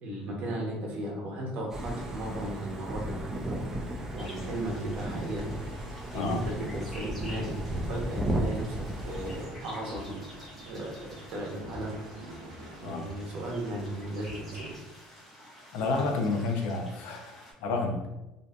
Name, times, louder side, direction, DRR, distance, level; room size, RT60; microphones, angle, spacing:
voice 1, 0.0-3.3 4.1-5.5 6.1-10.2 10.6-11.9 12.8-14.7, right 1 dB, 55° right, -2 dB, 0.8 m, -35 dB
sound 1, 1.7-9.5, right 1 dB, 15° right, 0.4 m, -35 dB
sound 2, 4.2-17.5, equal, 5° left, 0.8 m, -50 dB
sound 3, 9.1-14.8, equal, 90° right, 0.5 m, -47 dB
voice 2, 15.7-18.1, left 3 dB, 70° left, 3 dB, 0.5 m, -30 dB
2.6 x 2.4 x 2.2 m, 0.97 s
cardioid pair, 120°, 3 cm